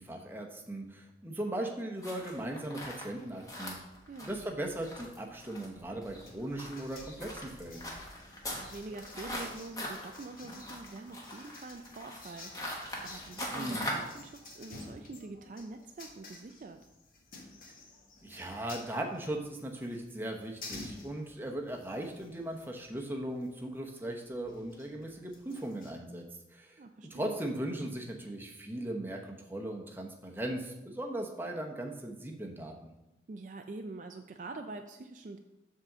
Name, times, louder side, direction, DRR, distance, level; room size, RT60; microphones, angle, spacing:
voice 1, 0.0-3.8 4.2-7.9 13.5-13.9 18.2-26.3 26.5-32.9, right 1 dB, 10° right, 1 dB, 0.8 m, -38 dB
sound 1, 2.0-14.2, equal, 20° left, 1.2 m, -42 dB
sound 2, 6.2-25.9, left 3 dB, 50° left, 1.3 m, -52 dB
voice 2, 8.4-12.8 13.0-16.8 26.8-27.4 33.3-35.4, right 3 dB, 45° right, 5 dB, 0.4 m, -45 dB
7.4 x 3.7 x 6.6 m, 0.94 s
head